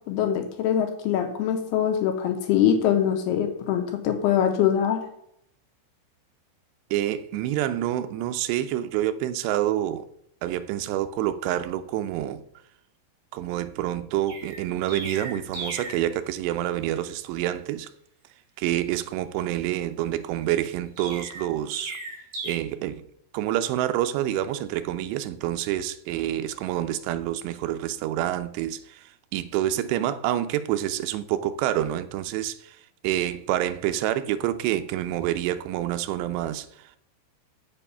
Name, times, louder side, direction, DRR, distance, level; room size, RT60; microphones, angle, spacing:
voice 1, 0.1-5.0, left 9 dB, 75° left, 2.6 m, -23 dB
voice 2, 6.9-10.1 10.4-12.4 13.3-17.9 18.6-22.0 22.4-23.0 23.3-32.8 33.0-36.9, right 12 dB, 80° right, 2.7 m, -27 dB
Chirp tweet, 14.3-16.1 21.0-22.5, right 3 dB, 50° right, 3.7 m, -36 dB
7.5 x 7.0 x 5.5 m
omnidirectional pair, 5.1 m